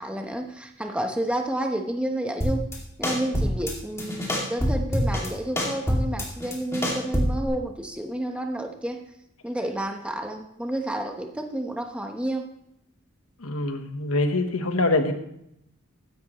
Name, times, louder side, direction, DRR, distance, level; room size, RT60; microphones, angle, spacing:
voice 1, 0.0-2.7 3.0-9.0 9.4-12.5, right 1 dB, 5° right, 4 dB, 1.0 m, -30 dB
sound 1, 2.4-2.8 3.0-3.7 4.0-5.3 5.6-7.5, equal, 15° left, 2.3 m, -25 dB
voice 2, 13.4-15.1, left 2 dB, 90° left, 7 dB, 1.2 m, -24 dB
15.0 x 10.5 x 3.1 m, 0.77 s
head